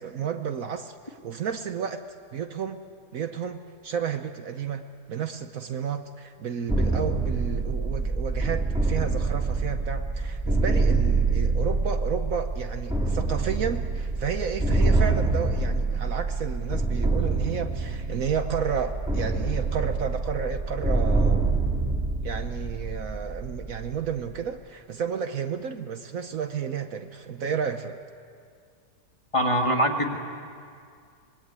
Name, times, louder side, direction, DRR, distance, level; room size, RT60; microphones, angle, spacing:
voice 1, 0.0-2.0 2.3-2.8 3.1-4.8 5.1-21.6 22.2-28.0, right 7 dB, 60° right, 8 dB, 1.2 m, -32 dB
sound 1, 6.7-24.4, right 3 dB, 5° right, 2.4 m, -26 dB
voice 2, 29.3-30.2, equal, 20° left, 2 dB, 1.9 m, -23 dB
26.0 x 21.0 x 9.6 m, 2.3 s
omnidirectional pair, 1.8 m